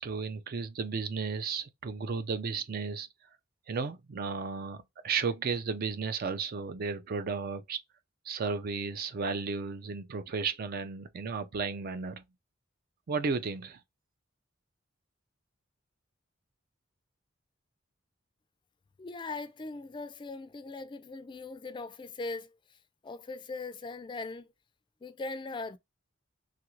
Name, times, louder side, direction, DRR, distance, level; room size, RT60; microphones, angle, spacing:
voice 1, 0.0-3.1 3.7-7.8 8.3-12.2 13.1-13.8, right 5 dB, 50° right, 0.4 m, -34 dB
voice 2, 19.0-22.5 23.0-24.5 25.0-25.8, left 3 dB, 25° left, 0.3 m, -40 dB
3.1 x 2.4 x 3.0 m
head